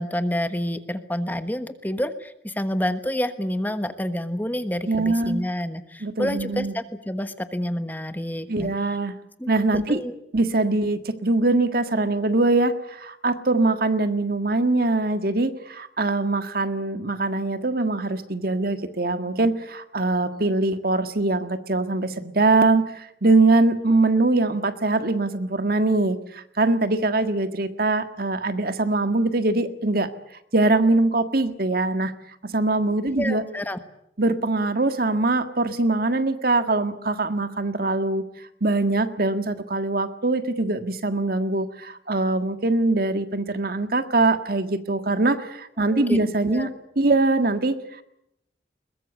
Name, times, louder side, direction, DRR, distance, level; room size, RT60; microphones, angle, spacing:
voice 1, 0.0-8.7 9.4-10.1 33.2-33.8 45.9-46.2 46.5-46.7, left 1 dB, 10° left, 10 dB, 1.2 m, -28 dB
voice 2, 4.9-5.4 6.0-6.7 8.5-9.1 9.5-10.0 10.3-30.1 30.5-32.1 32.5-33.4 34.2-38.2 38.6-48.0, right 2 dB, 55° right, 9 dB, 1.7 m, -22 dB
22.0 x 20.5 x 8.4 m, 0.78 s
head